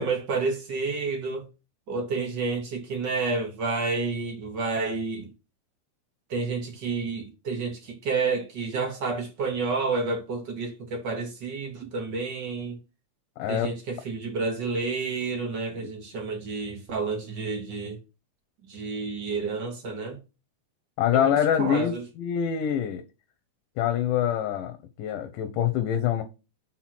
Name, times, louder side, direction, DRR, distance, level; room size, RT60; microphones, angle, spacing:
voice 1, 0.0-1.4 1.9-5.3 6.3-12.8 13.5-18.0 18.7-20.2 21.1-22.0, right 4 dB, 50° right, 1.3 m, -30 dB
voice 2, 13.4-13.7 21.0-23.0 23.8-26.2, left 9 dB, 90° left, 2.4 m, -25 dB
5.7 x 4.6 x 5.9 m
omnidirectional pair, 3.7 m